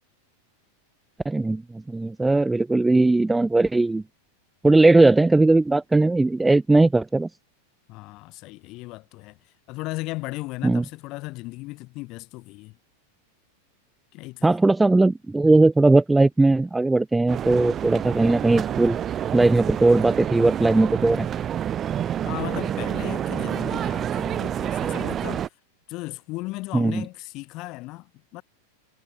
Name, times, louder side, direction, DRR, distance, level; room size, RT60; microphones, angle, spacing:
voice 1, 1.3-1.6 1.9-4.0 4.6-7.3 10.6-10.8 14.4-19.0 19.3-21.3 26.7-27.0, right 2 dB, 10° right, 0.4 m, -18 dB
voice 2, 7.9-9.4 9.7-12.8 14.1-14.6 22.2-25.5 25.9-28.4, left 21 dB, 40° left, 6.2 m, -36 dB
grand central, 17.3-25.5, right 10 dB, 25° right, 1.7 m, -28 dB
figure-of-eight pair, 90°, 0 cm